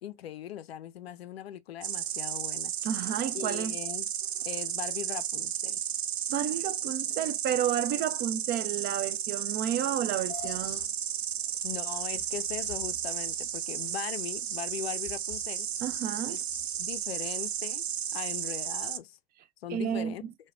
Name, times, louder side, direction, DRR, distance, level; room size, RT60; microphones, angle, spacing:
voice 1, 0.0-2.7 3.3-4.1 4.5-5.8 11.6-15.7 16.3-16.4 16.8-17.8 18.1-19.2 19.6-20.2, left 10 dB, 75° left, 0.5 m, -40 dB
Insect, 1.8-19.0, right 10 dB, 80° right, 0.5 m, -33 dB
voice 2, 2.8-3.8 6.3-10.9 15.8-16.4 19.7-20.3, right 10 dB, 30° right, 0.4 m, -31 dB
sound 1, 10.3-17.6, left 6 dB, 30° left, 1.2 m, -48 dB
4.6 x 2.2 x 2.4 m
figure-of-eight pair, 90°, 31 cm